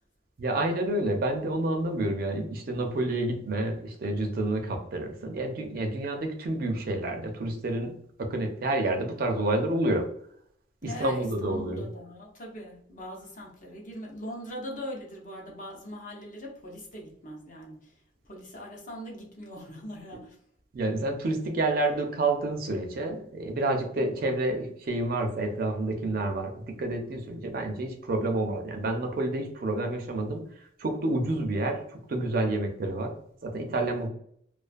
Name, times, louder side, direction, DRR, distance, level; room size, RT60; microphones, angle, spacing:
voice 1, 0.4-7.9 8.2-10.1 10.8-11.9 20.7-30.4 30.8-31.8 32.1-33.1 33.4-34.1, right 2 dB, 50° right, 4 dB, 0.4 m, -29 dB
voice 2, 10.8-17.9 18.2-20.4, equal, 40° left, -1 dB, 0.6 m, -41 dB
2.3 x 2.3 x 2.4 m, 0.66 s
head